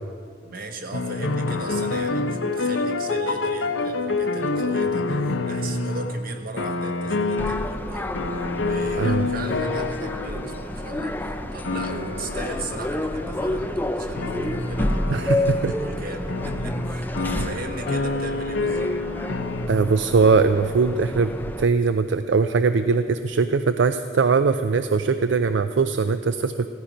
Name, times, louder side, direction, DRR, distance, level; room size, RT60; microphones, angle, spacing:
voice 1, 0.4-8.1 8.6-18.9, right 2 dB, 50° right, 4 dB, 1.3 m, -37 dB
sound 1, 0.9-6.3 6.6-7.8 8.1-13.7 14.2-19.7, left 3 dB, 80° left, 0.8 m, -27 dB
sound 2, 7.4-21.6, left 1 dB, 10° left, 0.5 m, -30 dB
voice 2, 9.0-9.3 15.1-15.7 19.7-26.7, right 4 dB, 70° right, 10 dB, 0.5 m, -21 dB
16.0 x 14.5 x 5.2 m, 2.4 s
head